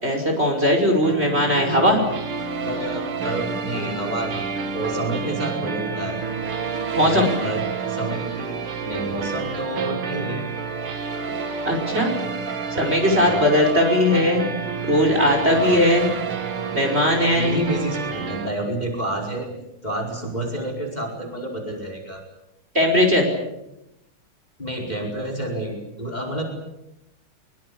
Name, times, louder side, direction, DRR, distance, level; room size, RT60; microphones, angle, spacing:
voice 1, 0.0-2.0 6.9-7.3 11.7-12.2 12.7-14.4 14.8-16.1 16.7-17.6 22.7-23.3, left 1 dB, 30° right, 2 dB, 5.5 m, -19 dB
sound 1, 1.0-18.5, right 5 dB, 80° right, 2.6 m, -29 dB
voice 2, 2.6-6.2 7.0-10.5 11.7-11.8 13.2-13.5 15.5-15.9 17.3-19.5 19.8-22.2 24.6-26.4, right 1 dB, 20° left, 2 dB, 5.1 m, -29 dB
24.5 x 23.0 x 8.6 m, 0.87 s
omnidirectional pair, 2.3 m